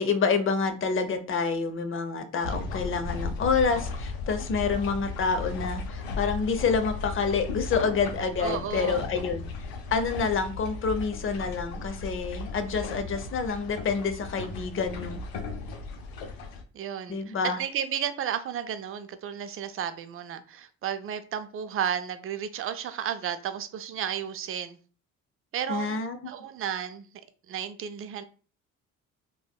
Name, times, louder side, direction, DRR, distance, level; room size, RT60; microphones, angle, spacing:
voice 1, 0.0-9.4 9.9-15.2 17.1-17.6 25.7-26.3, left 5 dB, 40° left, 0.6 m, -28 dB
sound 1, 2.4-16.6, left 3 dB, 80° left, 0.6 m, -36 dB
voice 2, 8.4-9.0 16.7-24.8 25.5-26.0 26.2-27.1 27.5-28.2, right 9 dB, 40° right, 0.4 m, -33 dB
3.3 x 2.2 x 2.2 m
supercardioid pair, 65°, 34 cm